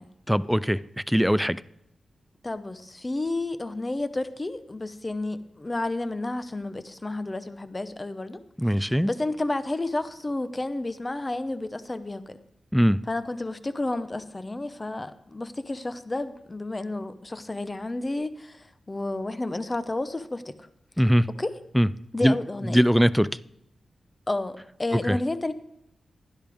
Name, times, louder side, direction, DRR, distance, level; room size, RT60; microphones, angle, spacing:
voice 1, 0.3-1.6 8.6-9.1 12.7-13.0 21.0-21.3 21.7-21.9 22.2-22.4 22.6-23.3 25.1-25.2, equal, ahead, 0.3 m, -21 dB
voice 2, 2.4-8.4 8.8-12.4 13.1-20.7 21.3-21.6 22.1-22.8 24.3-25.5, left 2 dB, 20° left, 0.8 m, -31 dB
15.5 x 12.0 x 3.5 m
wide cardioid pair, 125°, 0 cm